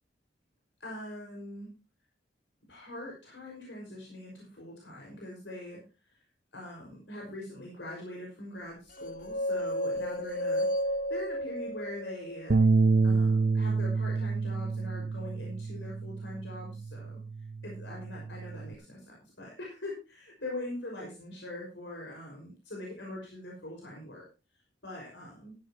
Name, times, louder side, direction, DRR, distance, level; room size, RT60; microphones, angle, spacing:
voice 1, 0.8-1.7 2.7-5.8 6.5-12.6 13.0-17.2 17.6-24.3 24.8-25.6, left 1 dB, 80° left, -2 dB, 5.5 m, -42 dB
sound 1, 9.0-13.1, equal, 50° left, 1.1 m, -33 dB
sound 2, 10.0-12.6, left 2 dB, 10° left, 4.3 m, -47 dB
sound 3, 12.5-18.7, right 4 dB, 50° right, 0.6 m, -28 dB
14.5 x 12.0 x 2.9 m, 0.30 s
head